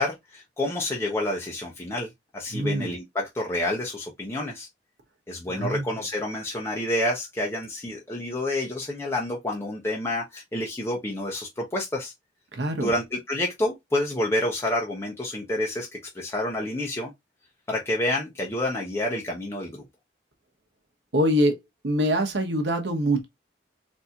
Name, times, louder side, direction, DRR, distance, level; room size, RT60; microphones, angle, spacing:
voice 1, 0.0-4.7 5.3-12.1 12.8-17.1 17.7-19.8, left 1 dB, 15° left, 0.7 m, -28 dB
voice 2, 2.5-2.9 5.5-5.9 12.5-12.9 21.1-21.6 21.8-23.3, equal, 75° right, 0.9 m, -24 dB
4.1 x 2.7 x 2.3 m
head